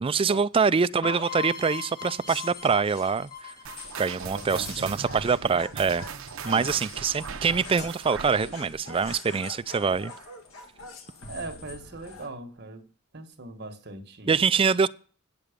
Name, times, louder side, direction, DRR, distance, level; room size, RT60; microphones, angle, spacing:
voice 1, 0.0-3.5 4.0-6.0 6.4-10.1 14.3-14.9, right 5 dB, 25° right, 0.4 m, -25 dB
sound 1, 1.0-4.8, left 7 dB, 20° left, 1.3 m, -38 dB
sound 2, 2.3-12.3, left 4 dB, 70° left, 1.7 m, -44 dB
sound 3, 3.6-10.5 10.8-11.1 11.7-11.8 12.6-12.7, right 6 dB, 70° right, 0.8 m, -40 dB
voice 2, 4.3-5.3 6.5-6.8 11.3-12.8 13.1-14.4, right 2 dB, 50° right, 1.4 m, -40 dB
9.2 x 8.0 x 5.1 m
head